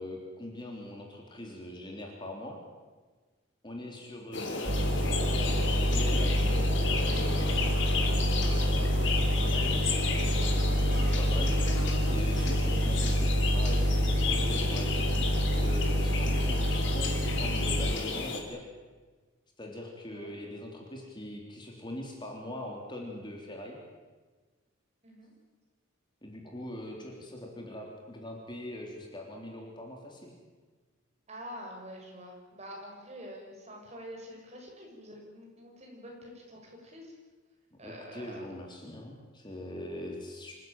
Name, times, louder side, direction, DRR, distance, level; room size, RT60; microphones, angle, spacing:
voice 1, 0.0-2.6 3.6-7.5 10.8-18.6 19.6-23.8 26.2-30.3 37.7-40.5, left 1 dB, 20° left, 1 dB, 3.6 m, -42 dB
sound 1, 4.3-18.4, left 4 dB, 60° left, 3.5 m, -34 dB
sound 2, 4.7-18.0, equal, 55° right, 1.8 m, -27 dB
voice 2, 9.4-10.2 20.1-20.3 25.0-25.3 31.3-37.2 37.8-38.5, equal, 30° right, 0 dB, 6.4 m, -46 dB
26.5 x 16.0 x 9.1 m, 1.3 s
head